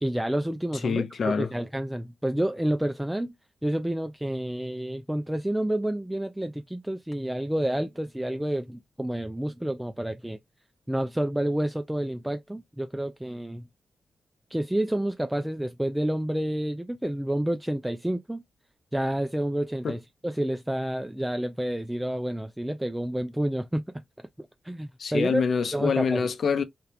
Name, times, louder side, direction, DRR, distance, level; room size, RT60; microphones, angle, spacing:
voice 1, 0.0-3.3 3.6-10.4 10.9-13.7 14.5-18.4 18.9-24.0 24.4-25.4 25.7-26.3, right 1 dB, 5° right, 0.3 m, -29 dB
voice 2, 0.8-1.5 19.8-19.9 25.0-26.6, left 6 dB, 60° left, 0.7 m, -26 dB
2.9 x 2.3 x 3.4 m
cardioid pair, 80°, 0 cm